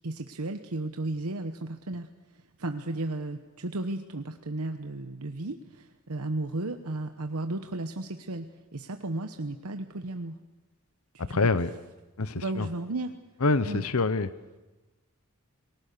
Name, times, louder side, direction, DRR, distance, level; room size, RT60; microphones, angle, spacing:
voice 1, 0.0-2.1 2.6-8.5 8.7-10.3 11.1-11.4 12.4-13.1 13.7-13.8, right 2 dB, 90° right, 6 dB, 1.1 m, -34 dB
voice 2, 11.2-11.7 12.2-12.7 13.4-14.3, left 3 dB, 80° left, 14 dB, 0.9 m, -26 dB
29.5 x 20.0 x 6.8 m, 1.2 s
head